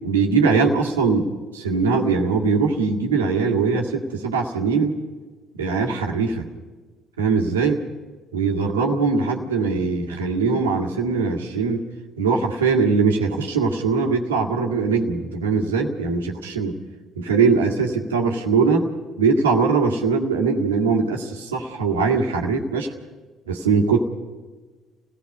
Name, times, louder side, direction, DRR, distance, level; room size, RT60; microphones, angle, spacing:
voice 1, 0.0-5.0 5.6-6.5 7.2-7.8 8.3-11.9 12.2-16.8 17.2-18.9 19.2-22.9 23.5-24.0, right 4 dB, 85° right, 2 dB, 2.0 m, -21 dB
30.0 x 17.5 x 5.5 m, 1.3 s
hypercardioid pair, 50°, 0 cm